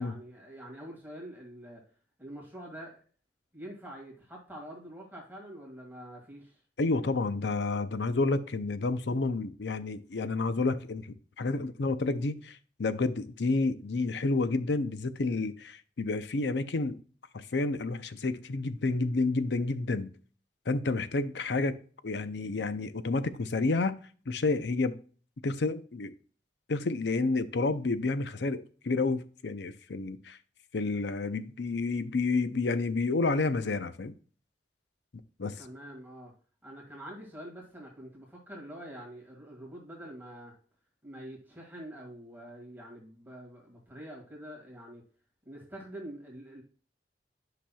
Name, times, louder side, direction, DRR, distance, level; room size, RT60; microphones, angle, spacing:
voice 1, 0.0-1.8 2.2-3.0 3.5-6.6 35.6-36.3 36.6-40.5 41.0-45.0 45.5-46.6, right 1 dB, 10° right, 2.1 m, -45 dB
voice 2, 6.8-11.1 11.4-17.0 17.3-20.1 20.7-21.8 22.0-23.9 24.3-25.0 25.4-26.1 26.7-30.4 30.7-34.1 35.1-35.5, left 3 dB, 75° left, 0.6 m, -30 dB
10.0 x 5.9 x 2.3 m
head